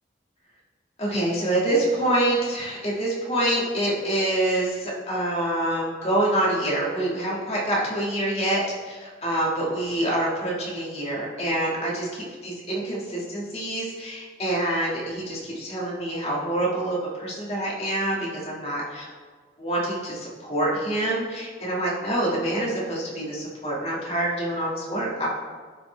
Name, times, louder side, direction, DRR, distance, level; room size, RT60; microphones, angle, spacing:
voice 1, 1.0-19.1 19.6-25.3, right 1 dB, 35° left, -5 dB, 1.8 m, -26 dB
12.0 x 4.3 x 3.3 m, 1.5 s
head